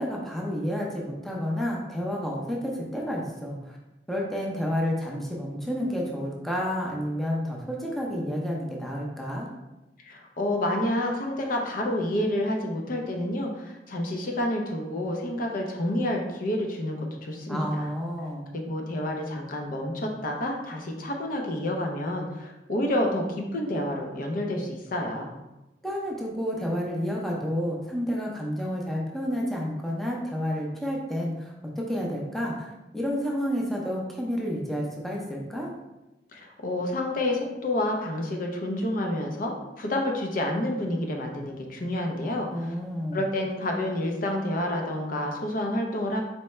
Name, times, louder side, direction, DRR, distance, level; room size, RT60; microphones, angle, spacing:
voice 1, 0.0-3.8 4.1-9.5 17.5-18.5 25.8-35.7 42.5-43.2, equal, ahead, -3 dB, 0.6 m, -30 dB
voice 2, 10.0-17.9 18.5-25.3 36.3-42.7 43.1-46.2, left 1 dB, 50° left, 1 dB, 0.6 m, -29 dB
4.3 x 3.3 x 3.2 m, 1.0 s
head